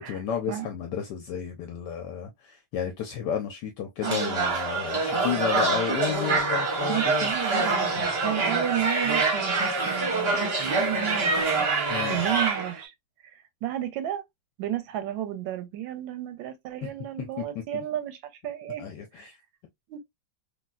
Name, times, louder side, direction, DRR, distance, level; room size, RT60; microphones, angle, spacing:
voice 1, 0.1-7.3 8.0-8.1 11.9-12.2 16.8-16.9 17.2-17.8 18.8-19.4, left 8 dB, 75° left, 1.1 m, -32 dB
sound 1, 4.0-12.8, right 3 dB, 45° right, 0.8 m, -25 dB
voice 2, 4.0-4.4 6.9-7.9 8.2-11.7 12.1-12.9 13.2-14.2 14.6-18.9 19.2-19.3 19.9-20.0, right 12 dB, 90° right, 1.4 m, -33 dB
3.2 x 2.6 x 2.2 m
omnidirectional pair, 2.1 m